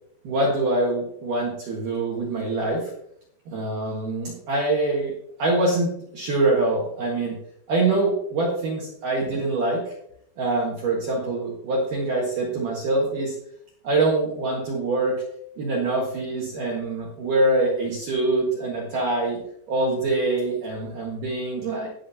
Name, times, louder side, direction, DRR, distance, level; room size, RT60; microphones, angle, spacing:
voice 1, 0.2-2.9 3.5-5.1 5.4-7.4 7.7-9.8 10.4-13.3 13.8-15.2 15.6-19.4 19.7-21.9, right 2 dB, 55° right, -3 dB, 2.5 m, -24 dB
17.5 x 6.2 x 2.8 m, 0.70 s
omnidirectional pair, 5.7 m